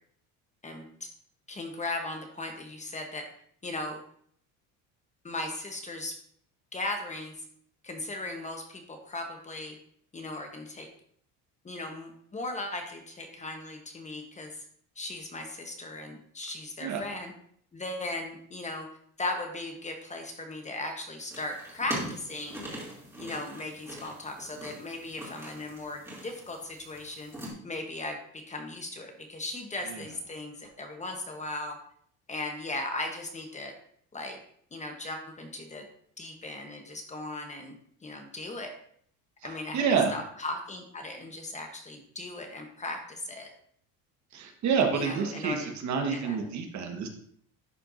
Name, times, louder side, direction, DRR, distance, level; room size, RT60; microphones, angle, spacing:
voice 1, 0.6-1.1 1.5-3.3 3.6-4.0 5.2-6.2 6.7-7.3 7.8-9.8 10.1-10.9 11.6-14.6 15.0-17.3 17.7-18.9 19.2-22.7 23.2-27.3 27.6-31.8 32.3-33.7 34.1-34.4 34.7-35.9 36.2-37.7 38.0-38.7 39.4-39.8 40.1-43.5 44.9-45.7 46.1-46.4, left 2 dB, 20° left, 4 dB, 1.0 m, -37 dB
sound 1, 21.3-27.5, right 1 dB, 5° right, 2.5 m, -42 dB
voice 2, 39.4-40.1 44.3-47.1, right 5 dB, 50° right, 4 dB, 1.3 m, -28 dB
11.0 x 4.4 x 2.6 m, 0.63 s
cardioid pair, 120°, 36 cm